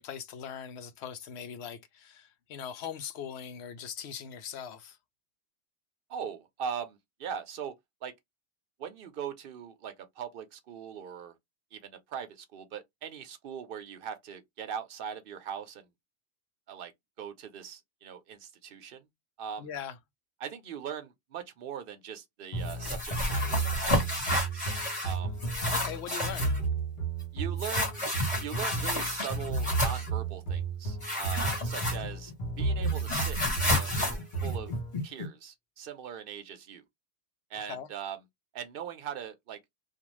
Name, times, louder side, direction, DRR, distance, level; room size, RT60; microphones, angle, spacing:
voice 1, 0.0-5.0 19.6-20.0 25.7-26.6 37.7-37.9, left 8 dB, 80° left, 0.9 m, -40 dB
voice 2, 6.1-7.8 8.0-8.1 8.8-11.3 11.7-15.9 16.7-16.9 17.2-19.1 19.4-19.7 20.4-23.7 23.9-24.7 25.0-25.4 27.3-28.1 28.4-32.3 32.6-33.4 33.6-34.7 35.0-36.8 37.5-38.2 38.5-39.6, right 8 dB, 60° right, 0.8 m, -40 dB
sound 1, 22.5-35.0, right 4 dB, 50° left, 1.0 m, -33 dB
sound 2, 22.7-25.1 25.4-26.6 27.6-30.1 31.0-32.3 32.6-35.3, left 2 dB, 30° left, 1.2 m, -31 dB
2.5 x 2.3 x 3.0 m
omnidirectional pair, 1.1 m